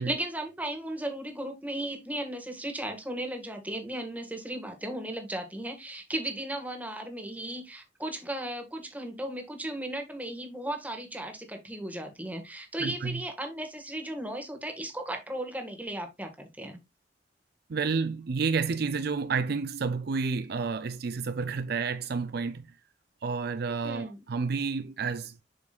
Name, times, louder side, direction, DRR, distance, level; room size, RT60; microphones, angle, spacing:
voice 1, 0.0-16.8 23.8-24.2, right 1 dB, 10° right, 1.6 m, -36 dB
voice 2, 12.8-13.2 17.7-22.7 23.2-25.4, right 5 dB, 60° right, 0.5 m, -30 dB
7.5 x 6.1 x 2.4 m
head